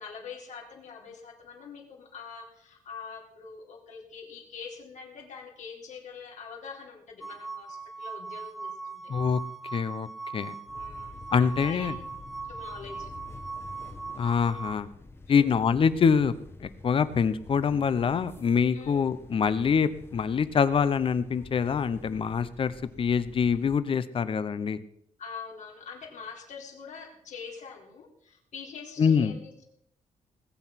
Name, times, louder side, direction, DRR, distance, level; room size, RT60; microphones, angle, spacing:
voice 1, 0.0-9.1 10.7-12.0 12.5-13.1 15.3-15.6 18.7-19.0 25.2-29.7, left 5 dB, 70° left, 0 dB, 3.9 m, -44 dB
sound 1, 7.2-14.8, right 4 dB, ahead, 1.1 m, -40 dB
voice 2, 9.1-9.4 9.7-10.1 10.3-10.5 11.3-11.9 14.2-14.9 15.3-16.3 16.6-24.8 29.0-29.3, left 6 dB, 45° left, 14 dB, 0.9 m, -25 dB
sound 2, 10.7-23.8, left 3 dB, 20° left, 1.4 m, -48 dB
20.0 x 7.9 x 5.9 m, 0.73 s
cardioid pair, 125°, 13 cm